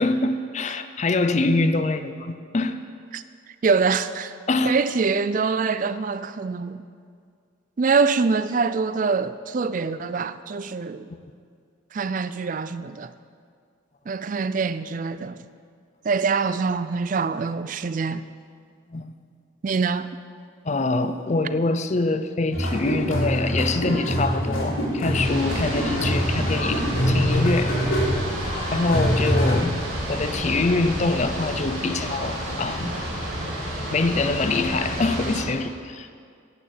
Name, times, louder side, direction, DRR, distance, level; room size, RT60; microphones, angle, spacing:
voice 1, 0.0-2.8 4.5-4.8 18.9-19.1 20.6-27.8 28.7-29.7 30.1-32.9 33.9-36.1, left 3 dB, 35° left, 0.5 m, -24 dB
voice 2, 3.6-4.3 4.7-6.9 7.8-11.1 11.9-13.1 14.1-15.4 16.0-18.2 19.6-20.1, right 4 dB, 40° right, 0.3 m, -24 dB
sound 1, 22.5-29.6, equal, 80° left, 3.0 m, -24 dB
sound 2, 25.1-35.4, right 1 dB, 85° right, 3.3 m, -30 dB
11.0 x 6.9 x 7.7 m
head